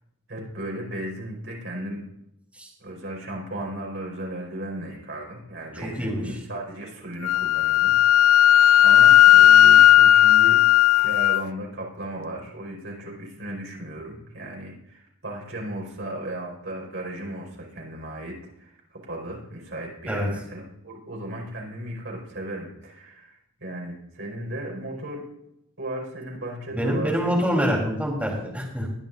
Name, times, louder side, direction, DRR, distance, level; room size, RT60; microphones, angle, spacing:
voice 1, 0.3-2.0 2.8-8.5 8.8-10.6 11.0-25.2 25.8-27.1, right 1 dB, 60° right, -1 dB, 5.1 m, -36 dB
voice 2, 6.0-6.3 20.1-20.3 26.7-28.9, equal, 5° right, -3 dB, 3.7 m, -25 dB
Wind instrument woodwind instrument, 7.2-11.4, left 11 dB, 90° left, 0.3 m, -15 dB
21.0 x 10.5 x 2.6 m, 0.81 s
head